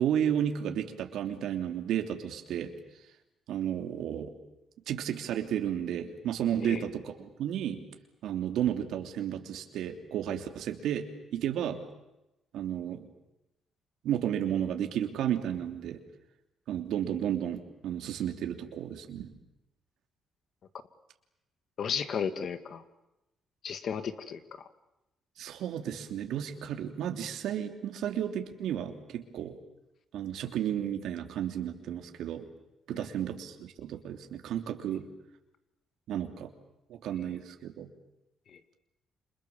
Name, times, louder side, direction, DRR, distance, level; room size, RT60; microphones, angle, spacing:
voice 1, 0.0-2.7 3.5-4.3 4.9-7.8 8.2-11.8 12.5-13.1 14.0-16.0 16.7-19.3 25.4-29.6 30.1-32.5 32.9-35.0 36.1-36.5 36.9-37.9, right 10 dB, 80° right, 5 dB, 3.1 m, -32 dB
voice 2, 21.8-22.8 23.6-24.4 38.5-38.6, left 7 dB, 60° left, 10 dB, 2.4 m, -33 dB
29.0 x 27.0 x 7.3 m, 0.91 s
cardioid pair, 90°, 0 cm